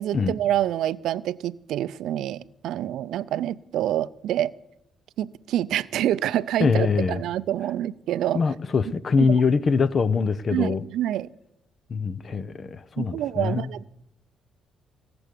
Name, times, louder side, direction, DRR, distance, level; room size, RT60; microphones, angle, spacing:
voice 1, 0.0-4.5 5.2-8.4 9.2-9.4 10.5-11.3 13.0-13.9, right 12 dB, 80° right, 0.4 m, -27 dB
voice 2, 6.6-7.2 8.3-10.9 11.9-13.7, left 5 dB, 45° left, 0.8 m, -23 dB
18.5 x 7.0 x 8.3 m
cardioid pair, 90°, 0 cm